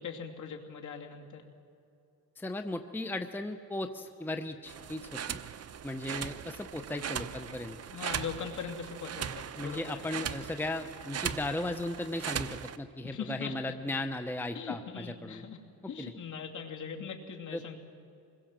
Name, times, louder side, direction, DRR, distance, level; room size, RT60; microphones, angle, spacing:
voice 1, 0.0-1.4 7.9-10.1 13.1-13.5 14.5-15.6 15.9-17.8, left 6 dB, 50° left, 2 dB, 3.0 m, -40 dB
voice 2, 2.4-5.4 5.8-7.8 9.5-15.4 16.0-16.1 17.5-17.6, left 2 dB, 5° left, 7 dB, 0.9 m, -36 dB
sound 1, 4.7-12.8, right 8 dB, 40° right, 0.8 m, -39 dB
26.5 x 21.5 x 7.6 m, 2.7 s
cardioid pair, 120°, 37 cm